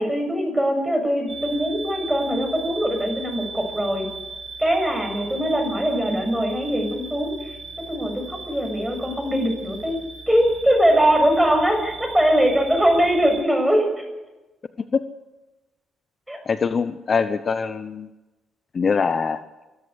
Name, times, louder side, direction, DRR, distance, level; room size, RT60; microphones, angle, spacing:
voice 1, 0.0-4.1 4.6-7.6 7.9-10.0 10.3-14.0 16.3-16.4, equal, 5° right, 4 dB, 7.5 m, -21 dB
sound 1, 1.3-13.4, right 4 dB, 40° right, 5.9 m, -38 dB
voice 2, 16.4-18.1 18.7-19.4, left 5 dB, 40° left, 11 dB, 0.9 m, -23 dB
24.0 x 14.0 x 8.2 m, 1.1 s
cardioid pair, 90°, 0 cm